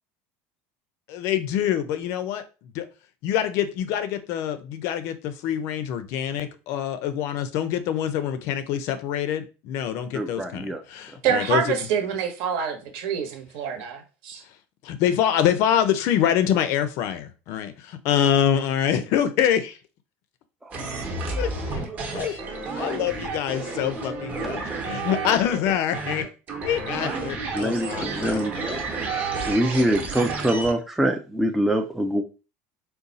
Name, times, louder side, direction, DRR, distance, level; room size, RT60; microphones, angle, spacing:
voice 1, 1.1-2.9 3.2-11.8 14.8-19.8 21.4-21.8 22.1-22.4 22.8-26.3 26.6-28.4, left 10 dB, 55° left, 11 dB, 0.5 m, -25 dB
voice 2, 10.1-10.8 20.6-21.0 27.5-28.5 29.4-32.2, right 1 dB, 5° right, 3 dB, 0.3 m, -24 dB
voice 3, 11.2-14.4, right 7 dB, 65° right, 4 dB, 1.0 m, -26 dB
sound 1, 20.7-30.7, right 3 dB, 30° right, 0.9 m, -31 dB
3.9 x 2.3 x 4.0 m, 0.33 s
cardioid pair, 160°, 6 cm